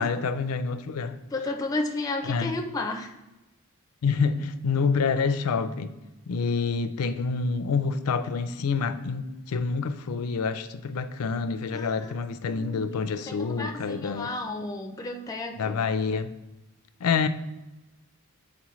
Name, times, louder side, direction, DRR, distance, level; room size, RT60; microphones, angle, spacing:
voice 1, 0.0-1.2 2.3-2.6 4.0-5.9 6.3-14.3 15.6-16.3 17.0-17.3, left 5 dB, 85° left, 0.4 m, -27 dB
voice 2, 1.3-3.1 11.7-12.2 12.5-13.0 13.3-15.9, left 2 dB, 15° left, 0.4 m, -33 dB
8.4 x 4.1 x 3.1 m
head